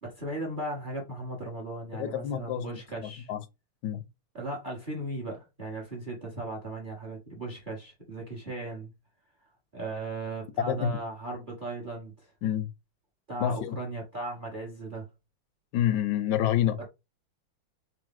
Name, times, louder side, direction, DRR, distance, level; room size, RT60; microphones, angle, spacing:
voice 1, 0.0-3.3 4.3-8.9 9.7-12.1 13.3-15.1 16.8-16.9, right 2 dB, 35° right, 0.8 m, -37 dB
voice 2, 1.9-2.7 3.0-3.4 3.8-4.0 10.7-11.0 12.4-12.7 13.4-13.8 15.7-16.8, left 10 dB, 70° left, 1.0 m, -28 dB
4.5 x 2.0 x 3.7 m
omnidirectional pair, 2.3 m